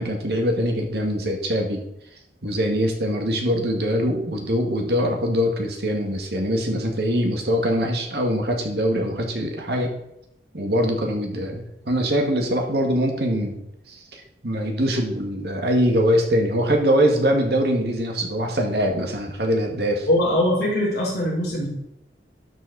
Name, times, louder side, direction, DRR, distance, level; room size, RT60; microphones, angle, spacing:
voice 1, 0.0-1.8 2.4-9.9 10.5-13.6 13.9-20.1, equal, 65° right, 2 dB, 2.0 m, -23 dB
voice 2, 20.1-21.7, left 1 dB, 60° left, -5 dB, 4.0 m, -21 dB
12.5 x 6.4 x 4.1 m, 0.81 s
head